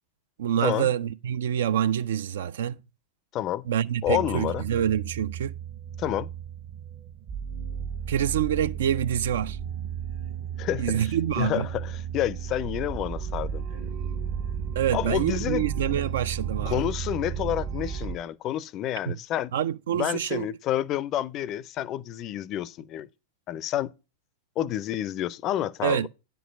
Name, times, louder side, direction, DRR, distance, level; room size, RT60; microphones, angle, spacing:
voice 1, 0.4-2.8 3.6-5.5 8.1-9.6 10.8-11.7 14.8-16.8 19.1-19.2 19.5-20.5 25.8-26.1, right 9 dB, 60° right, 0.4 m, -26 dB
voice 2, 3.3-3.7 4.0-4.6 6.0-6.3 10.6-13.9 14.9-15.6 16.7-19.5 19.9-23.1 23.5-23.9 24.6-26.1, left 12 dB, 35° left, 0.4 m, -29 dB
sound 1, 4.1-18.2, right 8 dB, 40° right, 0.7 m, -34 dB
10.0 x 4.6 x 5.1 m
figure-of-eight pair, 90°, 0 cm